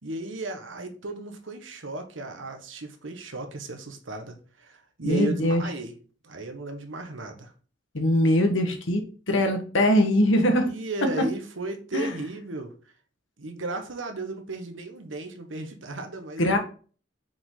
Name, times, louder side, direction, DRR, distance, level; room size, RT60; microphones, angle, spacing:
voice 1, 0.0-5.9 6.2-7.5 10.6-12.7 13.4-16.6, right 2 dB, 80° right, 5 dB, 1.3 m, -35 dB
voice 2, 5.0-5.6 7.9-10.7 11.9-12.1 16.4-16.6, left 1 dB, 75° left, 5 dB, 1.4 m, -22 dB
6.1 x 5.1 x 3.8 m, 0.40 s
head